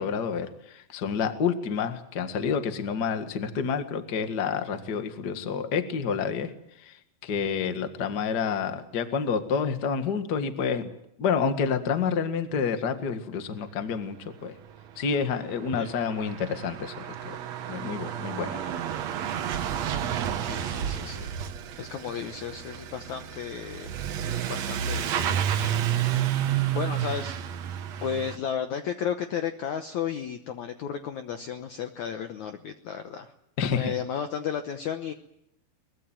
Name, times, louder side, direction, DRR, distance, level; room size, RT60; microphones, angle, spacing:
voice 1, 0.0-6.5 6.8-10.9 11.2-14.5 15.0-17.4 17.7-18.7 33.6-33.9, left 6 dB, 55° left, 8 dB, 1.1 m, -29 dB
Truck / Accelerating revving vroom, 14.7-14.8 15.0-28.4, right 10 dB, 85° right, 1.5 m, -30 dB
voice 2, 20.4-23.9 24.5-26.3 26.7-27.5 28.0-33.3 33.7-35.1, left 8 dB, 85° left, 7 dB, 1.6 m, -34 dB
22.5 x 21.0 x 9.1 m, 0.79 s
omnidirectional pair, 4.9 m